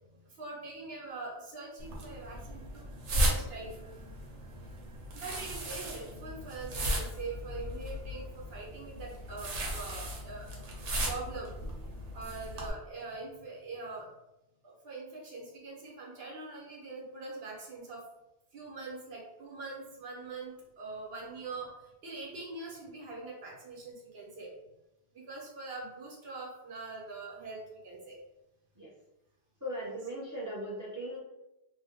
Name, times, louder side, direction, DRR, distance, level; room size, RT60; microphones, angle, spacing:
voice 1, 0.0-2.8 3.1-3.8 4.4-4.6 5.1-11.6 12.0-14.1 14.6-18.0 18.5-24.5 25.1-28.2 29.8-29.9, right 3 dB, 65° right, -2 dB, 1.1 m, -43 dB
sound 1, 1.8-12.7, equal, 85° right, 1.0 m, -36 dB
voice 2, 29.6-31.2, equal, 20° right, -5 dB, 0.5 m, -38 dB
2.7 x 2.0 x 3.5 m, 0.92 s
omnidirectional pair, 1.2 m